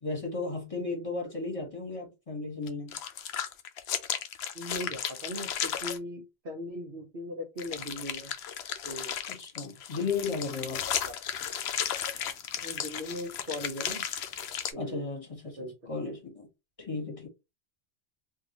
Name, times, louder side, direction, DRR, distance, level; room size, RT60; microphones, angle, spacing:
voice 1, 0.0-2.9 9.3-10.8 14.8-16.5 16.8-17.3, left 4 dB, 30° left, 1.4 m, -35 dB
sound 1, 2.7-6.0 7.6-14.7, left 9 dB, 75° left, 0.8 m, -34 dB
voice 2, 4.5-8.3 8.8-9.1 11.0-11.2 12.6-14.0 14.7-15.0 15.6-15.7, left 1 dB, 55° right, 1.0 m, -39 dB
3.6 x 2.7 x 2.9 m
omnidirectional pair, 1.1 m